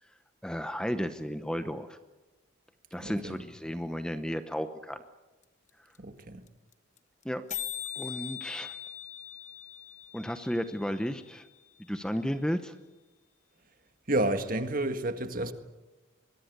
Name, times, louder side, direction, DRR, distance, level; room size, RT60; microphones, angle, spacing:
voice 1, 0.4-2.0 2.9-5.0 7.2-7.4 8.0-8.8 10.1-11.5 11.9-12.7, equal, 5° left, 0.9 m, -33 dB
voice 2, 3.0-3.4 6.0-6.4 14.1-15.5, right 1 dB, 40° right, 1.7 m, -30 dB
sound 1, 5.4-5.5 5.7-5.8 6.0-6.2 6.5-6.6 6.7-7.0 7.2-7.3 7.5-11.5, left 11 dB, 35° left, 1.4 m, -41 dB
24.0 x 22.5 x 8.1 m
head